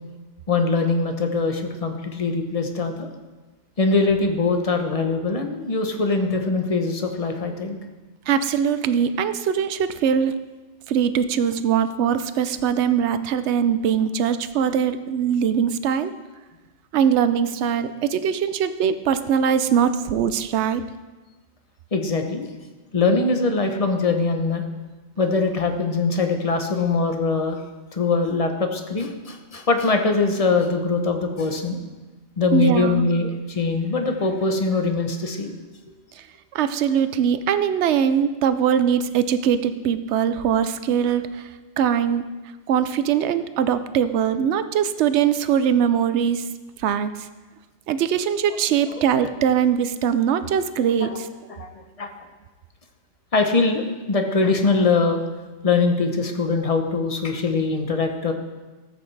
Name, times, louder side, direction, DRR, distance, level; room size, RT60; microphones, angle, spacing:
voice 1, 0.5-3.1 3.8-7.8 21.9-22.5 22.9-24.6 25.2-27.6 27.9-31.8 32.4-35.6 48.9-49.3 51.0-51.2 51.5-52.1 53.3-55.2 55.6-58.3, left 3 dB, 35° left, 5 dB, 0.8 m, -22 dB
voice 2, 8.3-10.3 10.9-16.1 16.9-20.8 32.5-33.1 36.5-41.5 41.8-42.2 42.7-46.4 46.8-47.3 47.9-51.3, right 8 dB, 70° right, 12 dB, 0.8 m, -21 dB
14.0 x 7.9 x 3.3 m, 1.2 s
omnidirectional pair, 1.3 m